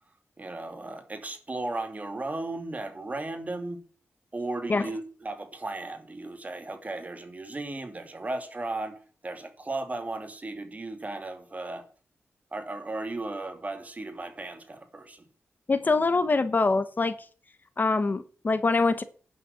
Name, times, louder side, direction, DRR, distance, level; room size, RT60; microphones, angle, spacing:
voice 1, 0.4-3.8 4.3-11.8 12.5-15.3, right 2 dB, 30° right, 2.5 m, -35 dB
voice 2, 15.7-17.1 17.8-19.0, left 3 dB, 40° left, 1.0 m, -24 dB
11.0 x 6.8 x 8.1 m
cardioid pair, 80°, 5 cm